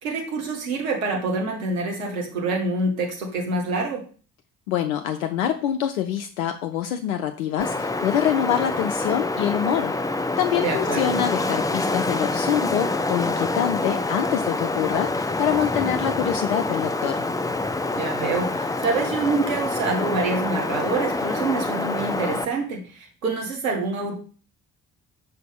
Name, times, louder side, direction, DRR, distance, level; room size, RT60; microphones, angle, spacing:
voice 1, 0.0-4.1 10.6-11.2 18.0-24.2, right 3 dB, 80° right, 1 dB, 1.2 m, -26 dB
voice 2, 4.7-17.2, left 10 dB, 75° left, 7 dB, 0.5 m, -25 dB
Wind, 7.6-22.4, left 2 dB, 10° left, 0.5 m, -26 dB
5.8 x 5.1 x 3.5 m, 0.39 s
figure-of-eight pair, 40°, 41 cm